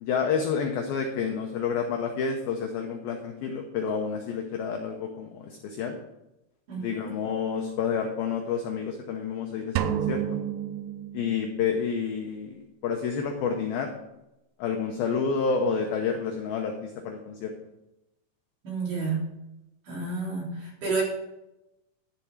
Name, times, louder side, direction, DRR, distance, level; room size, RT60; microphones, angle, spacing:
voice 1, 0.0-6.0 6.8-10.4 11.1-13.9 14.6-17.5, left 6 dB, 80° left, 3 dB, 2.2 m, -29 dB
voice 2, 6.7-7.1 18.6-19.2 19.9-21.0, right 4 dB, 45° right, -5 dB, 4.7 m, -30 dB
sound 1, 9.8-11.8, right 10 dB, 85° right, 2.5 m, -30 dB
11.5 x 6.9 x 4.8 m, 0.90 s
omnidirectional pair, 5.4 m